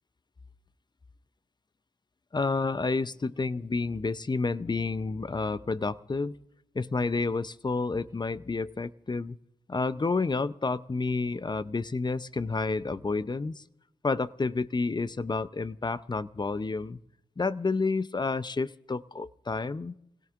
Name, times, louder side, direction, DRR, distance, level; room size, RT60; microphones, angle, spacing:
voice 1, 2.3-6.4 6.7-9.4 9.7-13.6 14.0-17.0 17.4-19.9, left 3 dB, 30° left, 15 dB, 0.6 m, -30 dB
28.0 x 17.0 x 2.5 m, 0.83 s
cardioid pair, 45°, 14 cm